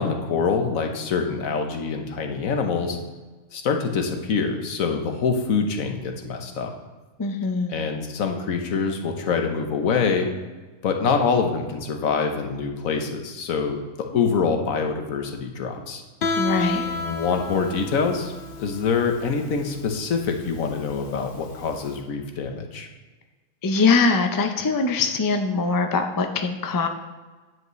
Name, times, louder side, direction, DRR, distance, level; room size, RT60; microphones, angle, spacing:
voice 1, 0.0-3.0 3.5-6.7 7.7-10.3 10.8-16.0 16.8-18.3 18.6-22.9, left 5 dB, 85° left, 4 dB, 1.4 m, -25 dB
voice 2, 7.2-7.7 16.4-16.8 23.6-26.9, left 4 dB, 35° left, 5 dB, 0.3 m, -22 dB
Guitar, 16.2-21.9, left 3 dB, 50° left, 0.7 m, -31 dB
9.4 x 8.0 x 3.1 m, 1.3 s
omnidirectional pair, 1.4 m